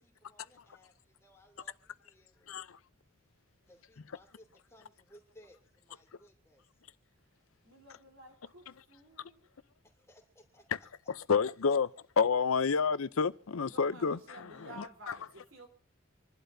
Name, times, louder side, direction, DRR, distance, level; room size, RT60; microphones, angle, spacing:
voice 1, 0.0-2.6 3.7-6.6 9.8-10.7, equal, 15° left, 2.9 m, -61 dB
voice 2, 2.5-2.8 4.1-4.2 10.7-10.8 11.1-14.2 14.8-15.1, left 5 dB, 90° left, 0.6 m, -30 dB
voice 3, 7.1-9.5 13.7-15.7, right 1 dB, 75° right, 3.7 m, -53 dB
27.0 x 11.5 x 2.7 m
head